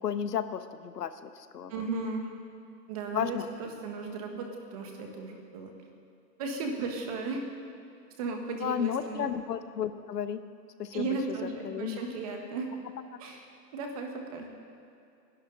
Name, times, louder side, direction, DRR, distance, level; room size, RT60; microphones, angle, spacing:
voice 1, 0.0-1.9 3.1-3.5 8.6-10.4 10.8-12.0 13.1-13.2, left 8 dB, 70° left, 11 dB, 1.1 m, -33 dB
voice 2, 1.7-2.3 2.9-5.7 6.4-7.4 8.2-9.3 10.9-12.7 13.2-13.5 13.7-14.5, right 4 dB, 20° right, 3 dB, 1.5 m, -35 dB
28.5 x 11.5 x 4.0 m, 2.5 s
hypercardioid pair, 165°, 50 cm